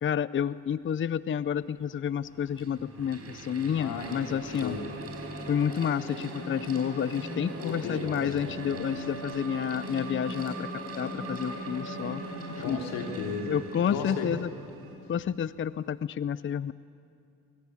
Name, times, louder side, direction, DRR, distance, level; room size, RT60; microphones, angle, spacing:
voice 1, 0.0-4.8 5.5-10.7 11.0-12.2 12.6-12.8 13.5-14.5 15.1-16.7, left 8 dB, 35° left, 17 dB, 0.6 m, -30 dB
Mechanical fan, 1.3-1.4 2.2-14.9, right 2 dB, 45° right, 5.0 m, -43 dB
sound 1, 1.9-15.0, equal, 90° right, 4.8 m, -41 dB
voice 2, 3.8-4.1 4.6-4.8 7.6-8.4 12.6-13.5 13.9-14.3, left 5 dB, 85° left, 2 dB, 3.2 m, -35 dB
23.5 x 23.5 x 8.5 m, 2.5 s
supercardioid pair, 55°, 34 cm